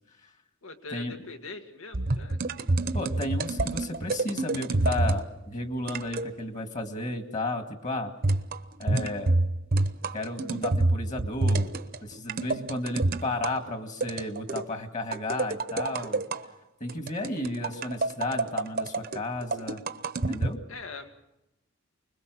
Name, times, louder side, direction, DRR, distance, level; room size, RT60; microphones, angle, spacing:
voice 1, 0.6-2.4 20.7-21.1, left 3 dB, 80° left, 6 dB, 1.9 m, -42 dB
sound 1, 1.9-5.3 5.9-6.3 8.2-13.5 14.0-14.7 15.1-16.4 16.9-20.5, right 2 dB, 45° right, 0.9 m, -27 dB
voice 2, 2.9-8.1 8.8-9.4 10.1-11.7 12.0-16.2 16.8-19.8 20.3-20.6, left 2 dB, 35° left, 6 dB, 1.9 m, -33 dB
25.0 x 21.5 x 6.2 m, 0.89 s
head